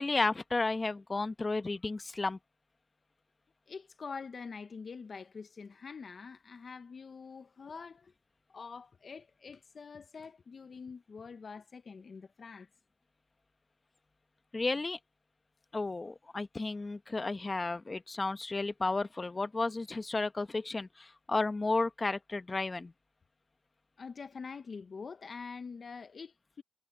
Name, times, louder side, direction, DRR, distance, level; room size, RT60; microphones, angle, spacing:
voice 1, 0.0-2.4 14.5-15.0 15.7-22.9, left 3 dB, 20° left, 1.2 m, -33 dB
voice 2, 3.7-8.1 8.5-12.7 24.0-26.6, left 5 dB, 40° left, 1.0 m, -45 dB
cardioid pair, 90°, 0 cm